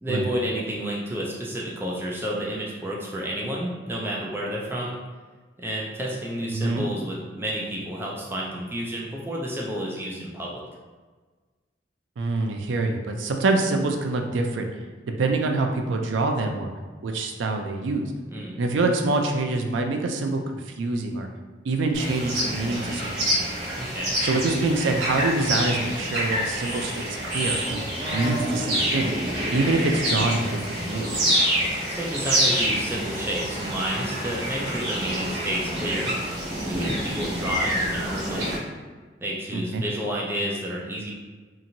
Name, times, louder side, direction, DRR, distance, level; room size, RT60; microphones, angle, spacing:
voice 1, 0.0-5.0 5.6-10.6 18.3-18.6 23.7-24.2 31.9-36.1 36.7-38.6 39.2-41.1, equal, 10° right, -3 dB, 0.3 m, -30 dB
voice 2, 6.5-6.8 12.2-14.7 15.2-16.7 17.0-18.1 18.6-21.3 21.6-23.3 24.2-27.1 27.3-27.8 28.1-29.1 29.5-31.2 39.5-39.8, right 2 dB, 85° right, 4 dB, 0.4 m, -25 dB
sound 1, 21.9-38.6, equal, 60° right, 1.2 m, -27 dB
2.8 x 2.5 x 2.6 m, 1.4 s
head